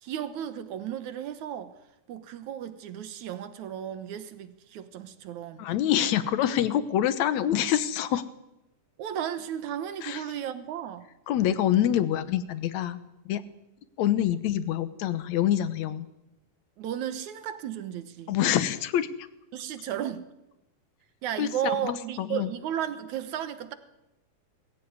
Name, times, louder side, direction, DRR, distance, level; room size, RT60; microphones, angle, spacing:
voice 1, 0.0-1.7 2.1-5.7 9.0-11.1 16.8-18.4 19.5-20.2 21.2-23.8, right 10 dB, 70° right, 12 dB, 2.4 m, -34 dB
voice 2, 5.6-8.2 10.0-10.2 11.3-13.0 13.3-13.4 14.0-16.1 18.3-19.3 21.4-22.5, left 11 dB, 65° left, 14 dB, 2.2 m, -26 dB
21.5 x 15.5 x 9.6 m, 0.92 s
omnidirectional pair, 3.7 m